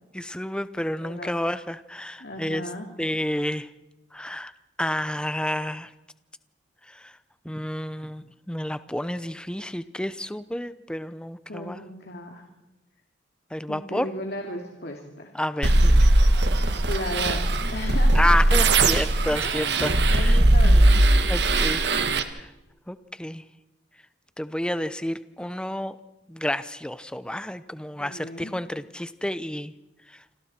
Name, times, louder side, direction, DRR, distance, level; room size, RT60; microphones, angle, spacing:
voice 1, 0.1-2.6 3.0-3.7 4.1-4.5 4.8-5.9 6.9-7.1 7.4-11.8 13.5-14.1 15.3-16.1 18.1-20.7 21.2-21.9 22.3-22.5 22.9-23.4 24.4-26.0 26.3-29.7, left 1 dB, 5° left, 13 dB, 0.7 m, -30 dB
voice 2, 1.0-1.3 2.2-2.9 11.5-12.4 13.7-15.3 16.9-17.4 17.7-18.3 19.4-21.0 28.0-28.5, left 1 dB, 55° left, 2 dB, 2.6 m, -35 dB
sound 1, 15.6-22.2, right 1 dB, 60° right, 1.5 m, -19 dB
28.0 x 26.0 x 4.4 m, 0.96 s
head